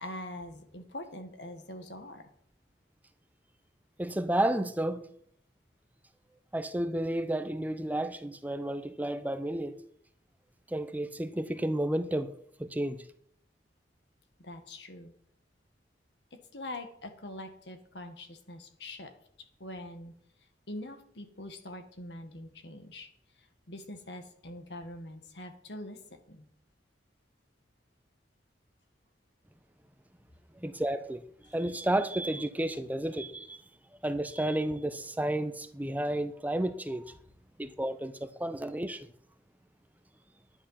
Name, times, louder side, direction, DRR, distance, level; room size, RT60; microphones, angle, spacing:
voice 1, 0.0-2.3 14.4-15.1 16.5-19.1 19.6-20.1 20.7-23.1 23.4-26.5, left 1 dB, 75° left, 1.7 m, -43 dB
voice 2, 4.0-5.1 6.5-9.8 10.7-12.3 12.6-13.0 30.6-31.2 31.5-33.6 34.0-37.1 37.6-39.1, right 1 dB, 10° right, 0.6 m, -31 dB
10.5 x 10.0 x 5.8 m
head